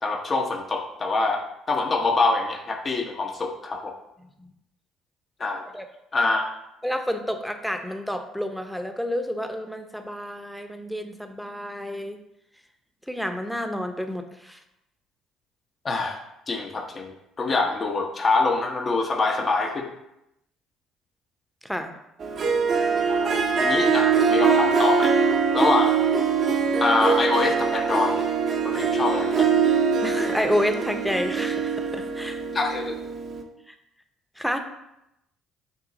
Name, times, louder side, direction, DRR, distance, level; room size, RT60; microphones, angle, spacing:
voice 1, 0.0-3.9 5.4-5.6 6.1-6.5 15.8-16.2 16.5-17.1 17.4-19.9 23.1-25.1 25.5-25.9 26.8-28.2 28.6-29.5 32.5-33.0, left 3 dB, 40° left, 2 dB, 1.0 m, -25 dB
voice 2, 6.8-12.2 13.1-14.6 21.6-21.9 30.0-32.4 33.7-33.8 34.4-34.6, equal, ahead, 6 dB, 0.9 m, -29 dB
Harp, 22.2-33.4, right 5 dB, 50° right, 0.9 m, -23 dB
8.1 x 3.1 x 4.0 m, 0.85 s
hypercardioid pair, 55°, 0 cm